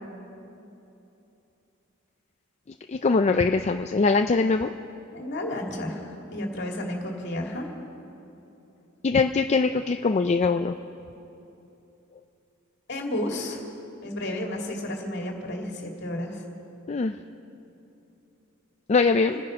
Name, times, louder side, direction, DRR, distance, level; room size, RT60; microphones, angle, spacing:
voice 1, 2.9-4.7 9.0-10.8 16.9-17.2 18.9-19.4, left 4 dB, 35° left, 7 dB, 0.4 m, -22 dB
voice 2, 5.1-7.7 12.9-13.6 14.0-16.4 19.0-19.4, left 1 dB, 60° left, 0 dB, 2.5 m, -32 dB
28.0 x 10.0 x 5.2 m, 2.9 s
head